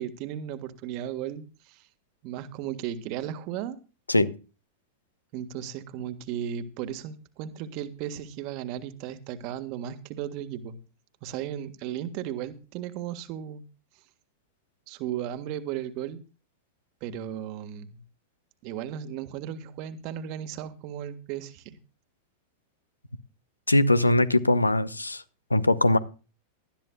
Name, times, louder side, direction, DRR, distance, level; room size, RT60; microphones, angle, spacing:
voice 1, 0.0-1.9 2.2-3.8 5.3-10.8 11.2-13.6 14.9-16.2 17.0-18.0 18.6-21.8, right 10 dB, 45° right, 11 dB, 1.6 m, -35 dB
voice 2, 23.7-25.2 25.5-26.0, left 1 dB, 85° left, 16 dB, 0.9 m, -21 dB
19.0 x 12.5 x 2.3 m, 0.33 s
figure-of-eight pair, 90°, 0 cm